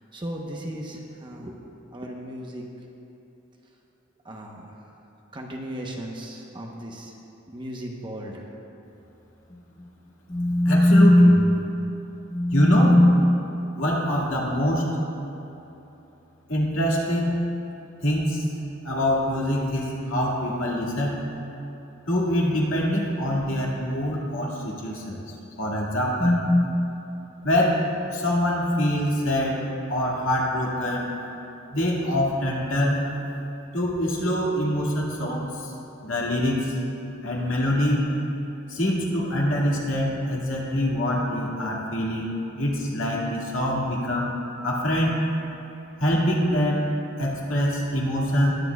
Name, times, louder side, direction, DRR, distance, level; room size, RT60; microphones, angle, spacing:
voice 1, 0.0-2.7 4.2-4.8 5.3-7.1 7.5-8.5, right 1 dB, 25° right, 0 dB, 0.8 m, -36 dB
voice 2, 10.3-11.4 12.3-13.2 13.8-14.9 16.5-17.4 18.0-18.4 18.8-21.2 22.1-26.7 27.4-27.8 28.1-29.6 29.9-31.1 31.7-33.0 33.7-35.7 36.0-36.7 37.2-38.1 38.7-44.3 44.6-45.2 46.0-46.9 47.2-48.5, left 1 dB, 75° left, -3 dB, 2.0 m, -23 dB
20.0 x 8.6 x 2.3 m, 3.0 s
head